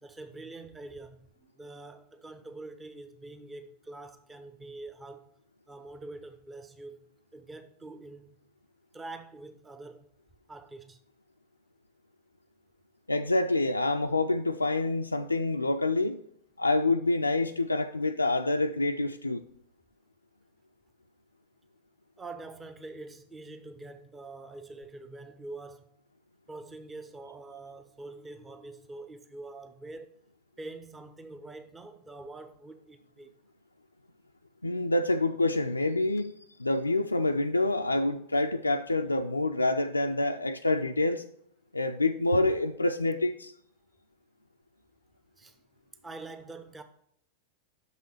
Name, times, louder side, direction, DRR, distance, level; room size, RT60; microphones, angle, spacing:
voice 1, 0.0-5.3 5.7-7.1 7.3-8.4 8.9-10.1 10.5-11.0 22.2-25.8 26.5-30.1 30.6-33.3 45.3-45.6 46.0-46.8, right 2 dB, 15° right, 0.7 m, -45 dB
voice 2, 13.1-16.2 16.6-19.4 34.6-36.3 36.6-41.2 41.7-43.5, left 2 dB, 85° left, 0.3 m, -27 dB
6.1 x 5.5 x 6.3 m
figure-of-eight pair, 90°, 0 cm